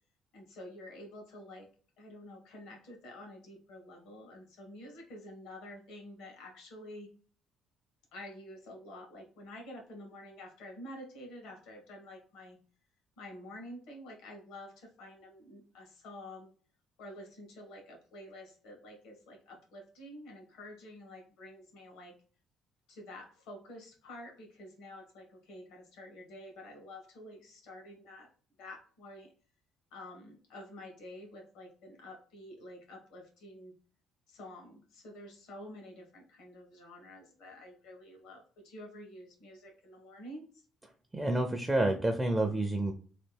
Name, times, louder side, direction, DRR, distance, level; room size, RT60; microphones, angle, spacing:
voice 1, 0.3-1.7 2.0-7.1 8.1-12.6 13.2-16.5 17.0-22.2 22.9-28.3 28.6-29.3 29.9-33.8 34.3-40.6, left 1 dB, 85° left, 1 dB, 1.4 m, -49 dB
voice 2, 41.1-42.9, right 1 dB, 10° right, 4 dB, 0.4 m, -29 dB
3.3 x 2.4 x 3.3 m, 0.41 s
cardioid pair, 145°, 0 cm